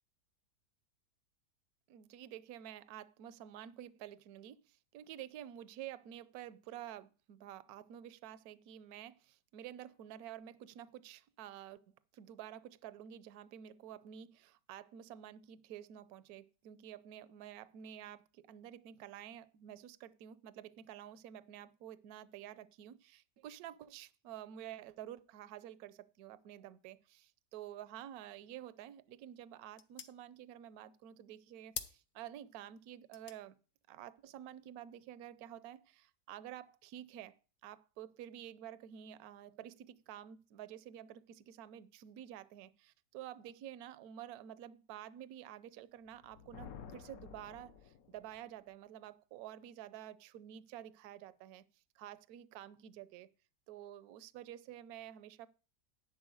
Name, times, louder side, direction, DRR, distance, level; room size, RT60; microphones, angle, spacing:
voice 1, 1.9-11.8 12.1-33.6 33.9-37.4 37.6-51.6 52.0-53.3 53.7-55.5, right 11 dB, 70° right, 1.0 m, -50 dB
sound 1, 28.7-35.6, left 9 dB, 80° left, 1.4 m, -53 dB
Thunder, 46.1-48.4, left 7 dB, 65° left, 1.1 m, -52 dB
11.0 x 4.2 x 7.6 m
omnidirectional pair, 1.8 m